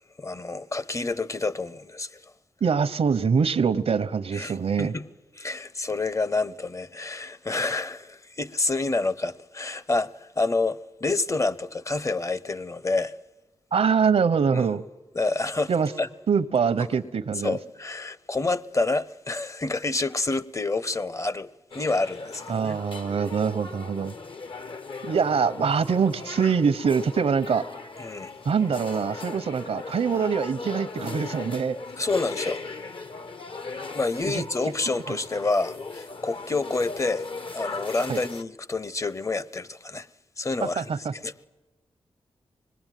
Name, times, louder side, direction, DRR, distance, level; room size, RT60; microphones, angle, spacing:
voice 1, 0.2-2.3 4.3-5.1 5.4-13.2 14.5-14.7 15.1-15.7 16.0-16.1 17.4-21.5 21.7-22.8 28.0-28.3 32.0-32.6 33.9-40.1 40.4-41.3, left 3 dB, 30° left, 0.8 m, -28 dB
voice 2, 2.6-4.9 13.7-14.8 15.7-15.9 16.3-17.6 22.5-24.2 25.0-27.7 28.4-31.8 34.2-34.4 35.1-35.2 38.1-38.2 40.6-41.1, right 6 dB, 75° right, 0.9 m, -24 dB
sound 1, 21.7-38.4, left 4 dB, 55° left, 1.0 m, -38 dB
25.0 x 20.0 x 9.2 m
cardioid pair, 55°, 10 cm